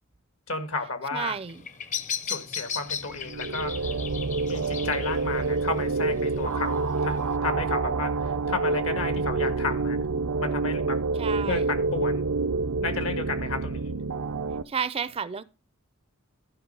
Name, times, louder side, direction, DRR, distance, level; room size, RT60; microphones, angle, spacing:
voice 1, 0.5-1.4 2.2-3.7 4.5-10.0 10.4-10.9 11.4-12.2 12.8-13.9, left 3 dB, 75° left, 1.7 m, -32 dB
voice 2, 1.1-1.6 11.2-11.7 14.7-15.4, right 6 dB, 25° right, 0.4 m, -31 dB
Bird vocalization bird call bird song, 1.4-7.4, left 7 dB, 35° left, 0.7 m, -37 dB
sound 1, 3.0-14.6, right 3 dB, 85° right, 0.6 m, -27 dB
12.0 x 5.1 x 5.4 m
head